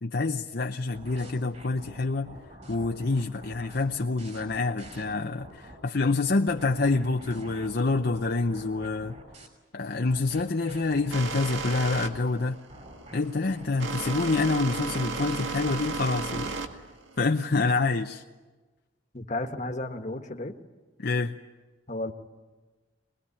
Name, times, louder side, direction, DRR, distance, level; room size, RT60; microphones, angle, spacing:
voice 1, 0.0-2.3 2.7-9.2 9.7-12.6 13.1-16.5 17.2-18.2 21.0-21.3, left 3 dB, 55° left, 4 dB, 0.7 m, -27 dB
sound 1, 0.9-5.8 6.2-9.5 10.1-16.8, right 1 dB, 40° right, 5.6 m, -47 dB
sound 2, 11.1-18.0, right 4 dB, 75° right, 1.9 m, -34 dB
voice 2, 19.1-20.5 21.9-22.1, left 2 dB, 40° left, 5 dB, 1.5 m, -33 dB
23.0 x 20.5 x 9.8 m, 1.3 s
head